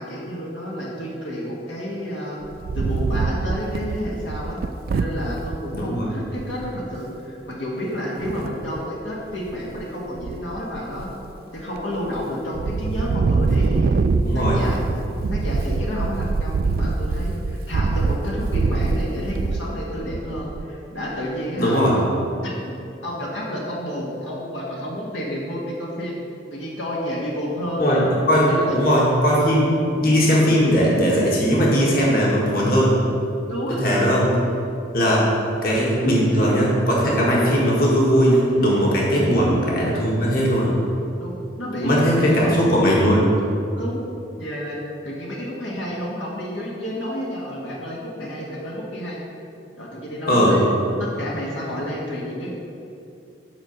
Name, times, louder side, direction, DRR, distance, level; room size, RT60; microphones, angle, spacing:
voice 1, 0.0-2.4 2.8-4.6 4.9-11.1 11.5-13.9 14.3-14.9 15.3-22.1 22.4-22.5 23.0-26.2 26.5-28.1 28.5-28.7 33.5-33.8 39.1-39.4 41.2-42.5 43.7-44.1 44.4-44.8 45.0-49.2 49.8-50.7 51.0-52.5, equal, 80° left, -4 dB, 1.8 m, -30 dB
Wind, 2.4-5.6 6.1-6.2 6.4-6.8 8.2-8.8 9.3-9.8 10.2-11.3 11.8-12.2 12.5-20.8, right 4 dB, 50° right, 0.3 m, -24 dB
voice 2, 5.7-6.1 14.3-14.6 21.6-22.0 27.8-28.0 28.3-29.7 30.0-33.0 33.7-34.4 34.9-35.3 35.6-40.7 41.8-43.3 50.3-50.6, equal, 50° left, -4 dB, 1.8 m, -18 dB
8.7 x 5.5 x 6.7 m, 2.6 s
head